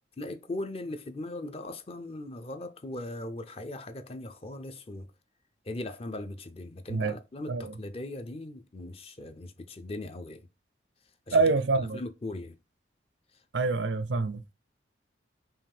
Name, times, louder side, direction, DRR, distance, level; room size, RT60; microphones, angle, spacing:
voice 1, 0.2-5.1 5.6-10.5 11.3-11.4 11.9-12.6 13.3-13.4, left 2 dB, 30° left, 0.5 m, -39 dB
voice 2, 11.3-12.0 13.5-14.5, right 3 dB, 80° right, 0.6 m, -26 dB
5.6 x 2.4 x 3.5 m
head